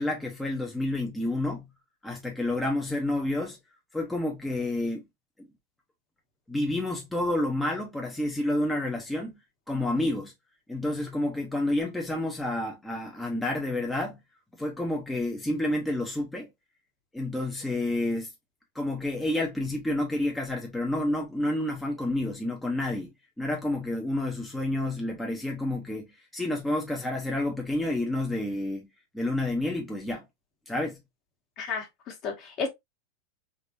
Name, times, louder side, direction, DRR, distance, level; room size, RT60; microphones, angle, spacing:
voice 1, 0.0-1.6 2.0-3.6 3.9-5.0 5.4-5.5 6.5-9.4 9.7-10.3 10.7-14.2 14.6-16.5 17.1-18.3 18.7-23.1 23.4-26.1 26.3-28.9 29.1-30.3 30.7-31.0, left 1 dB, 5° left, 0.6 m, -29 dB
voice 2, 31.6-32.7, left 5 dB, 40° left, 1.2 m, -33 dB
3.5 x 2.6 x 2.5 m
supercardioid pair, 145°, 0 cm